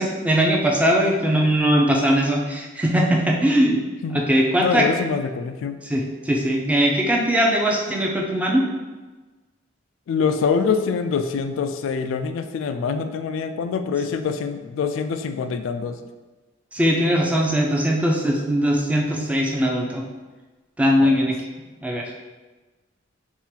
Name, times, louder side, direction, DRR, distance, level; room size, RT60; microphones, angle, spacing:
voice 1, 0.0-3.8 4.1-4.9 5.8-8.7 16.7-20.0 20.8-21.4 21.8-22.1, equal, 5° right, -1 dB, 0.5 m, -20 dB
voice 2, 4.6-5.8 10.1-16.0 21.0-21.1, left 5 dB, 80° left, 9 dB, 0.3 m, -25 dB
3.6 x 2.4 x 4.3 m, 1.2 s
head